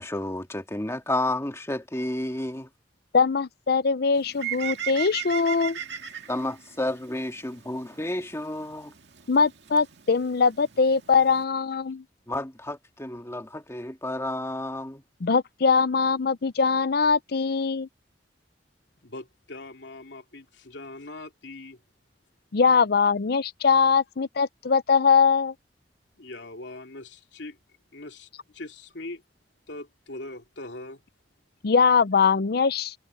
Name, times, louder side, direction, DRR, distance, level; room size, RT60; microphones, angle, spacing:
voice 1, 0.0-2.7 6.3-8.9 12.3-15.0, left 1 dB, 15° left, 2.0 m, -31 dB
voice 2, 3.1-5.8 9.3-12.0 15.2-17.9 22.5-25.5 31.6-32.9, left 5 dB, 60° left, 0.6 m, -22 dB
Bird, 4.1-11.4, right 11 dB, 70° right, 2.2 m, -39 dB
voice 3, 19.0-21.8 26.2-27.6 27.9-29.2 29.7-31.0, left 2 dB, 85° left, 2.8 m, -41 dB
head